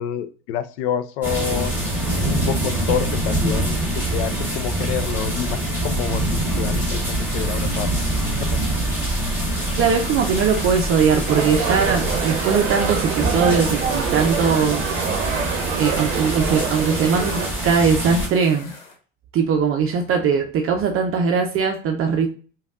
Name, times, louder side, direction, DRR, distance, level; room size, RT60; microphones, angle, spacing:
voice 1, 0.0-1.7 2.2-7.9 8.4-8.6, left 9 dB, 60° left, 12 dB, 0.5 m, -28 dB
sound 1, 1.2-18.3, right 1 dB, 5° right, 1.9 m, -25 dB
sound 2, 7.0-19.0, left 3 dB, 80° left, 1.1 m, -40 dB
voice 2, 9.8-14.8 15.8-18.7 19.3-22.3, right 6 dB, 35° right, 4 dB, 0.6 m, -20 dB
sound 3, 11.3-17.5, right 7 dB, 75° right, 0.7 m, -26 dB
5.0 x 2.4 x 2.4 m, 0.39 s
figure-of-eight pair, 70°, 39 cm